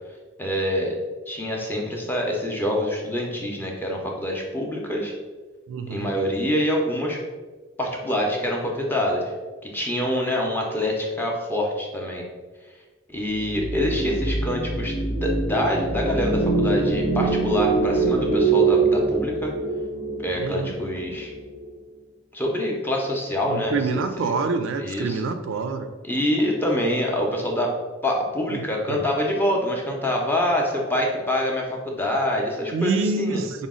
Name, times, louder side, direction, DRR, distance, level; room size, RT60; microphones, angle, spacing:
voice 1, 0.4-1.0 1.3-5.1 5.9-7.2 7.8-9.2 9.7-12.2 13.1-19.5 20.2-21.3 22.3-24.3 24.8-25.2 26.0-27.7 28.0-33.4, left 1 dB, 10° left, -1 dB, 0.5 m, -25 dB
voice 2, 5.7-6.1 20.4-20.8 23.5-25.9 28.5-29.0 32.7-33.7, right 4 dB, 65° right, 8 dB, 0.3 m, -27 dB
sound 1, 13.3-21.7, right 3 dB, 65° left, 1.1 m, -24 dB
5.0 x 2.0 x 3.6 m, 1.3 s
head